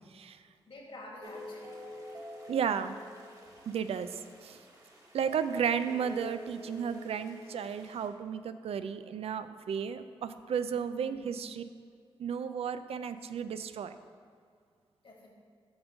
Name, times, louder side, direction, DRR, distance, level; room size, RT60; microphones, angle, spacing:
voice 1, 0.7-1.8 11.0-11.3 15.0-15.3, left 1 dB, 60° left, -1 dB, 1.8 m, -48 dB
sound 1, 1.2-8.1, left 1 dB, 35° right, 1.4 m, -47 dB
voice 2, 2.5-3.0 3.7-4.1 4.4-4.6 5.1-11.6 12.2-13.9, right 7 dB, 75° right, 11 dB, 0.4 m, -33 dB
7.9 x 3.7 x 6.2 m, 2.2 s
cardioid pair, 60°, 10 cm